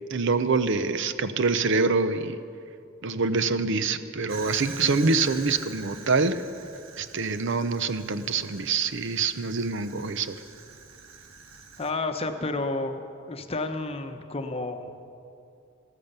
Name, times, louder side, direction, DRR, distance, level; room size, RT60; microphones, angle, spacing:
voice 1, 0.1-2.4 3.0-6.4 7.0-10.4, right 4 dB, 60° right, 12 dB, 0.6 m, -25 dB
Fire, 4.3-11.9, right 4 dB, 85° right, 1.3 m, -44 dB
voice 2, 11.8-14.9, left 2 dB, 30° left, 7 dB, 0.9 m, -31 dB
14.5 x 13.5 x 6.8 m, 2.5 s
head